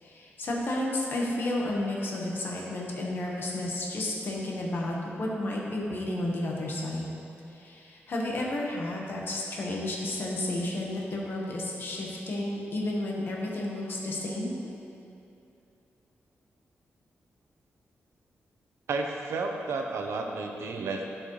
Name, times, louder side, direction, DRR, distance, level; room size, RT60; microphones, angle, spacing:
voice 1, 0.0-7.1 7.5-14.5, left 1 dB, 50° left, -2 dB, 1.3 m, -32 dB
voice 2, 18.9-21.1, right 3 dB, 85° right, 3 dB, 0.8 m, -32 dB
12.5 x 5.4 x 3.2 m, 2.7 s
wide cardioid pair, 145°, 4 cm